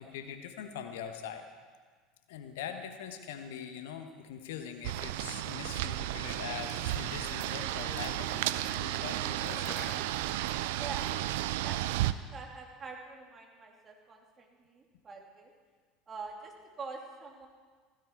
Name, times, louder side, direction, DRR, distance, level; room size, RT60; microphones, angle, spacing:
voice 1, 0.0-1.4 2.3-8.4 8.7-10.0, left 8 dB, 65° left, 7 dB, 1.2 m, -42 dB
sound 1, 4.8-12.1, right 14 dB, 65° right, 0.5 m, -33 dB
sound 2, 6.5-11.7, left 3 dB, 35° left, 3.3 m, -51 dB
voice 2, 10.6-15.5 16.1-17.5, right 4 dB, 30° right, 0 dB, 3.1 m, -46 dB
16.0 x 15.5 x 4.7 m, 1.5 s
figure-of-eight pair, 70°, 0 cm